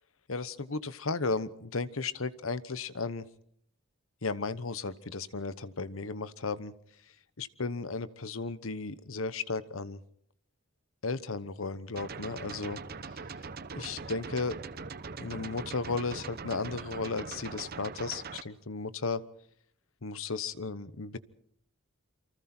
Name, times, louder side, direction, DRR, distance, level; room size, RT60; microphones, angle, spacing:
voice 1, 0.3-3.3 4.2-6.7 7.4-10.0 11.0-12.8 13.7-14.5 15.2-19.2 20.0-21.2, left 3 dB, 75° left, 15 dB, 1.1 m, -34 dB
sound 1, 12.0-18.4, right 4 dB, 50° right, 0.9 m, -42 dB
29.0 x 24.5 x 4.4 m, 0.65 s
head